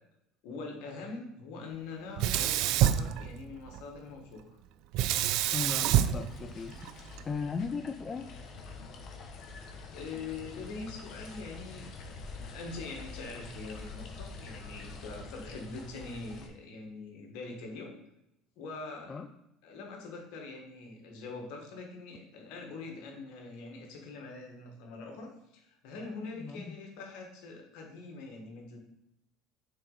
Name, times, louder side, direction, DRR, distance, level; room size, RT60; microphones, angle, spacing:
voice 1, 0.4-4.4 9.9-18.0 18.6-19.2 19.6-28.8, left 3 dB, 75° left, 2 dB, 1.7 m, -43 dB
Sink (filling or washing), 2.2-3.8 4.9-7.2, right 12 dB, 70° right, 0.3 m, -27 dB
sound 1, 5.1-16.5, left 3 dB, 55° left, 1.2 m, -46 dB
voice 2, 5.5-6.8 7.2-8.3 19.1-19.3 26.4-26.7, left 5 dB, 30° left, 7 dB, 0.4 m, -37 dB
6.4 x 4.2 x 4.1 m, 0.83 s
supercardioid pair, 90°, 0 cm